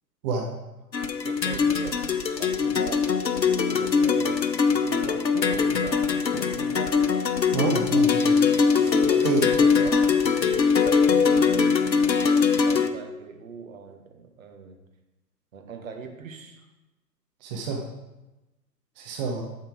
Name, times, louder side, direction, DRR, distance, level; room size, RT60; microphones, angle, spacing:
sound 1, 0.9-12.9, left 5 dB, 85° left, 0.9 m, -22 dB
voice 1, 1.2-7.0 8.7-14.8 15.5-16.7, right 5 dB, 55° right, 4 dB, 1.5 m, -40 dB
Fireworks, 6.3-9.4, left 1 dB, 15° left, 1.8 m, -45 dB
voice 2, 7.5-8.3 9.2-9.4 17.4-17.8 19.0-19.4, right 4 dB, 25° right, 2 dB, 0.9 m, -27 dB
8.7 x 6.6 x 4.8 m, 1.0 s
figure-of-eight pair, 120°, 49 cm